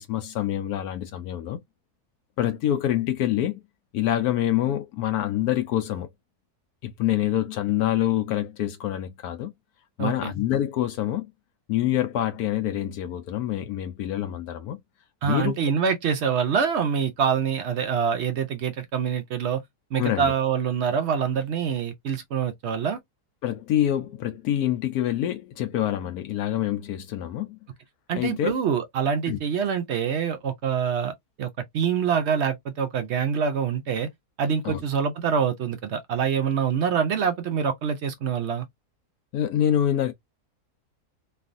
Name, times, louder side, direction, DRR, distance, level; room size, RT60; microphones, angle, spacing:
voice 1, 0.0-1.6 2.4-3.6 3.9-6.1 6.8-9.5 10.0-11.2 11.7-14.8 15.2-15.6 19.9-20.3 23.4-27.6 28.1-28.5 29.3-29.4 34.6-34.8 39.3-40.1, left 12 dB, 75° left, 1.1 m, -26 dB
voice 2, 10.0-10.3 15.2-19.6 19.9-23.0 28.1-31.1 31.4-34.1 34.4-38.7, right 7 dB, 70° right, 0.6 m, -25 dB
3.2 x 2.4 x 2.5 m
omnidirectional pair, 1.7 m